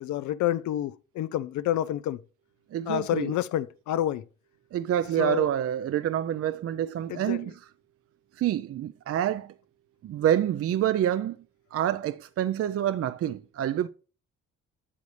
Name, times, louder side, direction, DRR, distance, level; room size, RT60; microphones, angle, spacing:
voice 1, 0.0-2.2 2.9-4.2 5.2-5.5 7.1-7.4, left 12 dB, 75° left, 0.5 m, -28 dB
voice 2, 2.7-3.3 4.7-7.5 8.4-9.5 10.0-11.4 11.7-13.9, right 11 dB, 50° right, 0.5 m, -27 dB
8.4 x 7.0 x 3.2 m
cardioid pair, 90°, 30 cm